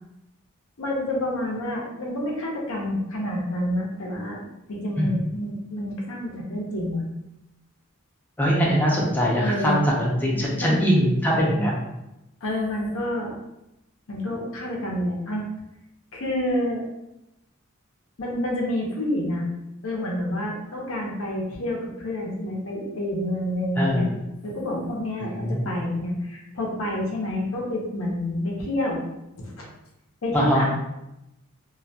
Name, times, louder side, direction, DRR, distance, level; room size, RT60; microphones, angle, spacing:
voice 1, 0.8-4.4 4.7-7.0 9.4-9.8 10.6-10.9 12.4-13.4 14.1-15.5 16.1-16.9 18.2-19.5 19.8-24.1 24.4-29.0 29.4-29.7 30.2-30.6, left 1 dB, 80° left, -1 dB, 0.6 m, -28 dB
voice 2, 8.4-11.7 23.8-24.1 25.2-25.7 30.3-30.6, equal, 10° left, -5 dB, 0.4 m, -22 dB
2.2 x 2.1 x 2.6 m, 0.89 s
head